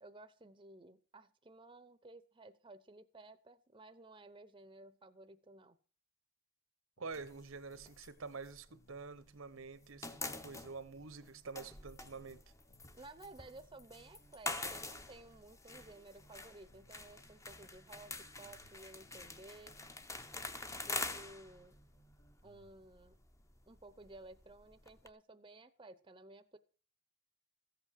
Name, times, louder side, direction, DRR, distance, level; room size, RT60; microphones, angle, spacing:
voice 1, 0.0-5.8 12.9-19.8 20.6-21.8 22.4-23.2 23.7-26.6, right 2 dB, 25° right, 0.8 m, -56 dB
sound 1, 7.0-8.4 8.7-12.4 12.7-16.4 16.7-20.4 20.7-22.8, right 2 dB, 45° left, 2.3 m, -68 dB
voice 2, 7.0-12.4, right 4 dB, 75° right, 1.0 m, -47 dB
sound 2, 7.1-9.4 9.6-25.1, left 3 dB, 15° left, 0.8 m, -46 dB
14.5 x 8.3 x 6.4 m
head